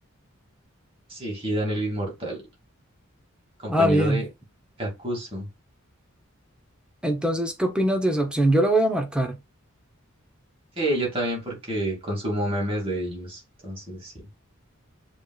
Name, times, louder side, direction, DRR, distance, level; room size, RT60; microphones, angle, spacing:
voice 1, 1.1-2.4 3.6-4.3 4.8-5.5 10.8-14.1, right 1 dB, 25° right, 2.1 m, -28 dB
voice 2, 3.7-4.2 7.0-9.4, right 1 dB, 5° right, 0.7 m, -22 dB
6.9 x 3.2 x 2.3 m
head